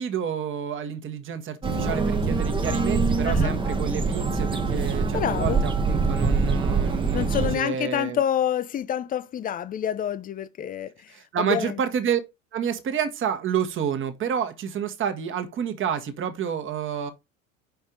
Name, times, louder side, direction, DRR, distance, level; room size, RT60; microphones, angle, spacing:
voice 1, 0.0-8.2 11.1-12.2 12.5-17.1, right 8 dB, 30° right, 1.2 m, -29 dB
sound 1, 1.6-7.6, right 4 dB, 10° right, 0.9 m, -24 dB
voice 2, 5.1-5.6 7.1-11.8, left 9 dB, 20° left, 0.6 m, -28 dB
5.4 x 4.6 x 5.1 m
figure-of-eight pair, 75°, 41 cm